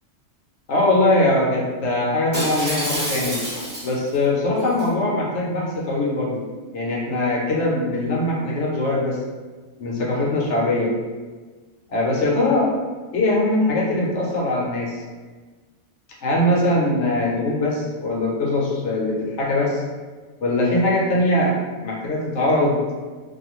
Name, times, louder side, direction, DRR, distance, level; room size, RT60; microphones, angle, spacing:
voice 1, 0.7-3.4 3.8-6.4 6.7-9.2 9.8-10.9 11.9-12.7 13.1-15.0 16.2-19.8 20.4-22.8, left 1 dB, 70° left, -3 dB, 1.0 m, -21 dB
Shatter, 2.3-4.1 4.6-4.9, equal, 35° right, 0.9 m, -28 dB
2.4 x 2.2 x 3.0 m, 1.4 s
omnidirectional pair, 1.3 m